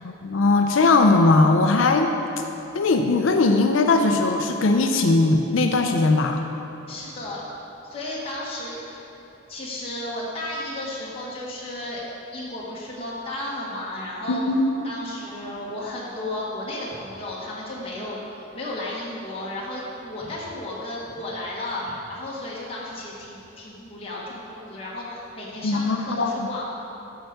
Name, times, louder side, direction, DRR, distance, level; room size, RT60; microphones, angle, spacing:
voice 1, 0.0-2.1 2.7-6.4 14.3-14.6 25.6-26.3, left 3 dB, 70° left, 5 dB, 0.5 m, -19 dB
voice 2, 6.9-7.5 7.8-9.1 9.5-12.0 12.3-14.4 14.8-26.6, left 1 dB, 30° left, -6 dB, 1.4 m, -33 dB
8.8 x 4.6 x 6.5 m, 2.9 s
head